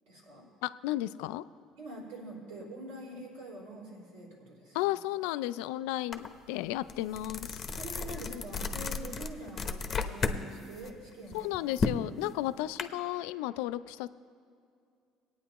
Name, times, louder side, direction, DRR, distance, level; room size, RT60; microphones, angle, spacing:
voice 1, 0.1-0.5 1.8-4.9 7.8-11.7, right 2 dB, 90° right, -3 dB, 3.2 m, -45 dB
voice 2, 0.6-1.4 4.7-7.6 8.3-8.4 11.3-14.1, left 15 dB, 80° left, 14 dB, 0.3 m, -34 dB
sound 1, 6.1-6.3 6.7-10.4 10.8-12.8, left 4 dB, 40° left, 0.9 m, -34 dB
21.0 x 9.0 x 3.0 m, 2.4 s
supercardioid pair, 80°, 0 cm